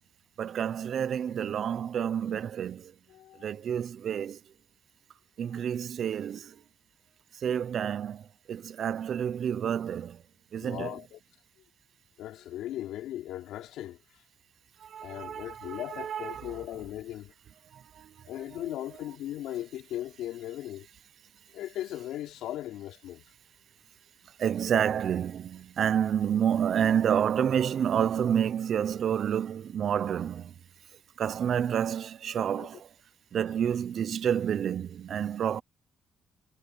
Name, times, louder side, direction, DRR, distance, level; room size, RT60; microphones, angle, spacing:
voice 1, 0.4-2.9 3.3-4.4 5.4-6.6 7.3-10.2 10.5-10.9 14.8-16.6 17.7-18.7 24.4-30.5 31.2-32.9 33.3-35.6, right 8 dB, 60° right, 0.7 m, -29 dB
voice 2, 3.1-3.5 10.6-11.2 12.2-14.2 15.0-17.3 18.3-20.9 21.5-23.2 32.6-32.7, left 13 dB, 90° left, 3.5 m, -38 dB
cardioid pair, 90°, 0 cm